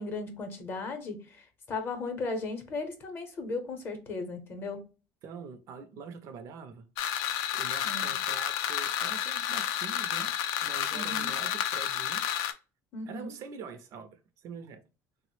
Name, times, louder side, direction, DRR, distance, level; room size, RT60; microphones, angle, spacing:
voice 1, 0.0-4.8 7.8-8.2 10.9-11.3 12.9-13.3, left 3 dB, 30° left, 0.7 m, -36 dB
voice 2, 5.2-6.8 7.2-10.3 10.6-12.4 13.1-14.1 14.4-14.8, right 5 dB, 50° right, 0.4 m, -45 dB
sound 1, 7.0-12.5, left 10 dB, 90° left, 0.4 m, -31 dB
3.4 x 2.0 x 2.9 m
cardioid pair, 160°, 7 cm